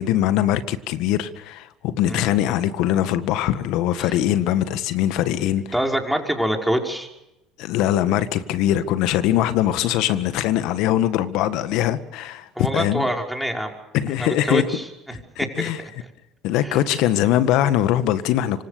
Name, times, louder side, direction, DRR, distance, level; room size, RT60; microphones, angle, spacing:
voice 1, 0.0-5.6 7.6-13.0 13.9-14.6 15.4-15.8 16.4-18.6, left 12 dB, 65° left, 1.7 m, -22 dB
voice 2, 5.7-7.1 12.6-13.7 14.2-16.1 16.6-16.8, equal, ahead, 5.6 m, -26 dB
26.0 x 25.5 x 6.9 m
hypercardioid pair, 70°, 0 cm